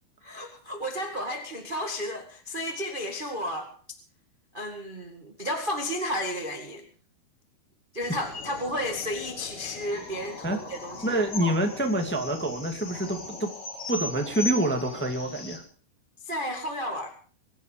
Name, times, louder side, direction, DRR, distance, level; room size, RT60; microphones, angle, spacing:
voice 1, 0.2-3.7 4.5-6.8 7.9-11.5 16.2-17.1, left 1 dB, 25° right, 3 dB, 1.0 m, -33 dB
sound 1, 8.0-15.6, left 2 dB, 45° left, 4.4 m, -39 dB
voice 2, 11.0-13.5 13.9-15.6, right 1 dB, 5° left, 3 dB, 1.3 m, -27 dB
24.0 x 10.5 x 5.1 m, 0.42 s
omnidirectional pair, 4.7 m